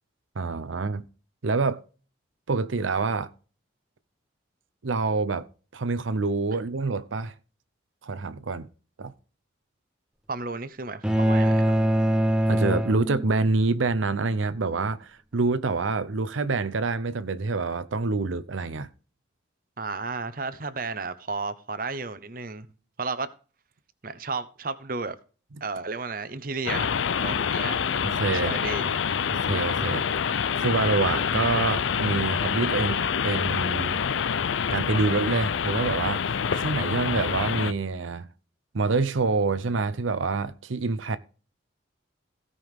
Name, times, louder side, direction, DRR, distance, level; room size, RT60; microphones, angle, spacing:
voice 1, 0.4-1.0 1.4-1.8 2.5-3.3 4.8-5.5 5.7-7.3 8.0-8.7 9.0-9.1 12.5-18.9 28.0-28.5 29.3-30.1 30.5-34.0 34.7-38.3 38.7-41.2, right 3 dB, 85° right, 0.7 m, -26 dB
voice 2, 10.3-11.8 19.8-22.7 23.0-23.3 24.0-25.2 25.6-27.8 28.4-28.9, right 4 dB, 45° right, 0.8 m, -33 dB
sound 1, 11.0-13.6, equal, 5° right, 0.7 m, -23 dB
sound 2, 26.7-37.7, left 7 dB, 80° left, 0.5 m, -26 dB
16.5 x 5.5 x 3.6 m
head